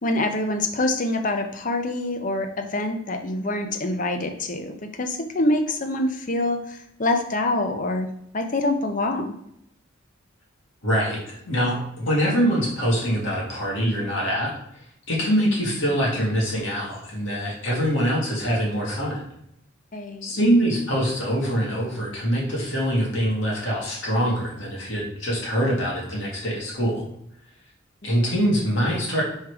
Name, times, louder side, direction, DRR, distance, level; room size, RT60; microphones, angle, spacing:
voice 1, 0.0-8.1 8.3-9.3 19.9-20.3 28.0-28.1, left 2 dB, 40° left, 6 dB, 0.7 m, -25 dB
voice 2, 10.8-11.8 12.0-19.2 20.2-27.0 28.0-29.2, equal, 65° left, -4 dB, 2.2 m, -24 dB
4.8 x 4.6 x 4.8 m, 0.74 s
head